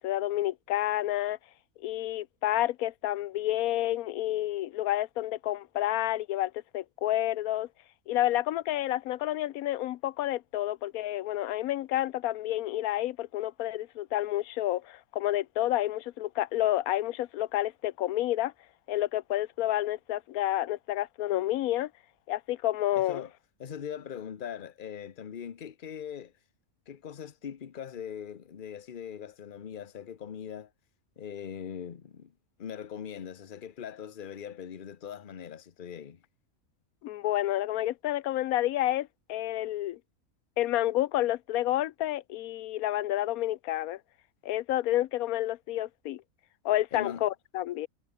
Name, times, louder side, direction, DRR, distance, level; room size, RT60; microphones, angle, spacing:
voice 1, 0.0-1.4 1.8-7.7 8.1-18.5 18.9-21.9 22.3-23.2 37.0-40.0 40.6-44.0 44.4-46.2 46.6-47.9, left 14 dB, 85° left, 1.1 m, -29 dB
voice 2, 23.0-23.3 23.6-26.3 26.9-30.7 31.2-32.3 32.6-36.2 46.9-47.2, left 8 dB, 40° left, 1.0 m, -41 dB
omnidirectional pair, 1.5 m